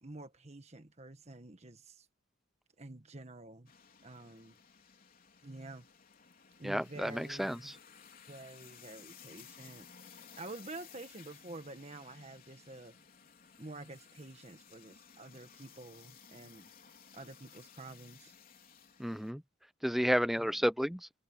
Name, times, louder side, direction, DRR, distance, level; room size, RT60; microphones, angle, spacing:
voice 1, 0.0-2.1 2.8-3.7 4.0-4.6 5.4-5.8 6.6-7.7 8.3-13.0 13.6-16.7 17.1-18.3 20.4-20.6, right 2 dB, 35° right, 1.5 m, -49 dB
sound 1, 3.7-19.3, left 7 dB, 50° left, 3.9 m, -57 dB
voice 2, 6.6-7.6 19.0-19.4 19.8-21.1, equal, ahead, 0.5 m, -31 dB
head